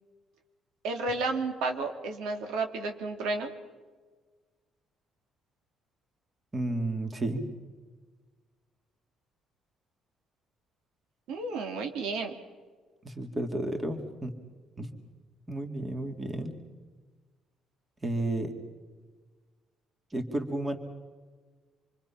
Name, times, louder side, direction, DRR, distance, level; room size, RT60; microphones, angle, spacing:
voice 1, 0.8-3.5 11.3-12.3, right 3 dB, 85° right, 4 dB, 2.9 m, -32 dB
voice 2, 6.5-7.5 13.0-14.3 14.8-14.9 15.5-16.6 18.0-18.5 20.1-20.8, right 1 dB, 15° right, 5 dB, 2.3 m, -32 dB
27.0 x 24.5 x 5.8 m, 1.4 s
cardioid pair, 145°, 0 cm